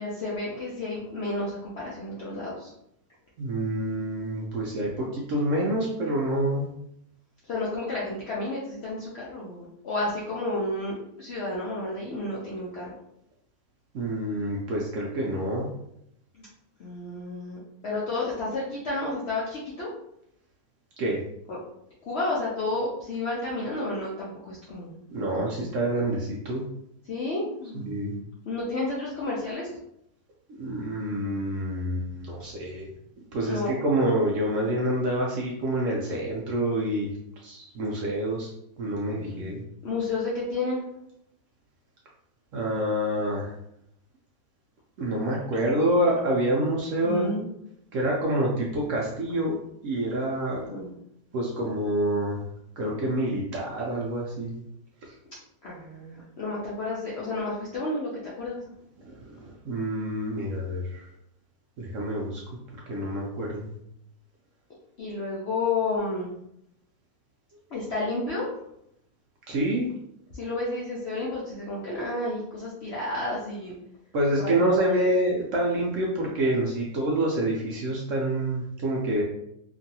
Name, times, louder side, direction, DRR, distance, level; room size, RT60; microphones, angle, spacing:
voice 1, 0.0-2.7 6.4-6.6 7.5-12.9 16.3-16.5 16.8-19.9 21.5-21.6 22.1-24.9 25.3-25.7 27.1-29.7 33.5-33.8 39.2-39.6 39.8-40.9 47.0-47.4 49.3-49.4 50.7-50.9 55.6-58.1 58.4-58.6 65.0-66.3 67.7-68.4 70.3-73.8 74.4-75.2, left 2 dB, 65° left, -6 dB, 0.6 m, -31 dB
voice 2, 3.4-6.7 13.9-15.7 21.0-21.2 25.1-26.6 27.7-28.1 30.6-32.9 33.2-37.1 37.4-38.5 38.8-39.6 42.5-43.5 45.0-47.3 47.9-49.6 49.8-50.6 51.3-52.4 52.8-54.6 55.0-55.1 59.0-61.1 61.8-62.4 62.9-63.7 69.5-69.9 74.1-79.2, right 1 dB, 70° right, -2 dB, 0.8 m, -27 dB
2.9 x 2.5 x 2.7 m, 0.76 s
omnidirectional pair, 1.8 m